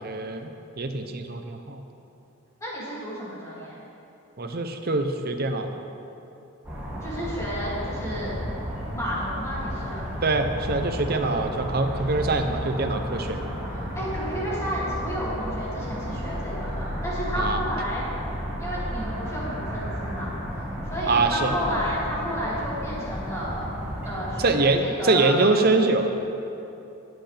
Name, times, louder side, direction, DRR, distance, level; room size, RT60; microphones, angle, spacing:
voice 1, 0.0-1.8 4.4-5.8 10.2-13.4 17.3-17.6 21.1-21.5 24.4-26.2, right 3 dB, 45° right, 6 dB, 0.7 m, -24 dB
voice 2, 2.6-3.7 7.0-8.3 8.9-10.1 13.7-18.0 18.6-23.6 24.0-25.4, equal, 15° left, -8 dB, 2.6 m, -32 dB
sound 1, 6.6-24.5, equal, 10° right, 1.9 m, -33 dB
16.5 x 7.9 x 3.4 m, 2.9 s
head